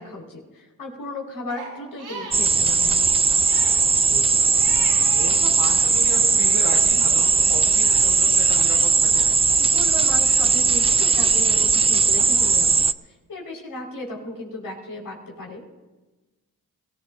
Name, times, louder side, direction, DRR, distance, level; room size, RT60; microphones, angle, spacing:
voice 1, 0.0-3.1 9.6-15.6, left 2 dB, 65° left, -2 dB, 4.8 m, -36 dB
Crying sobbing, 1.5-5.4 5.7-6.8, right 3 dB, 85° right, 5.6 m, -40 dB
sound 1, 2.3-12.9, right 4 dB, 15° right, 0.3 m, -18 dB
voice 2, 4.0-4.5 5.1-9.3, right 3 dB, 70° right, 0 dB, 2.9 m, -35 dB
22.5 x 15.0 x 2.6 m, 1.2 s
cardioid pair, 60°, 38 cm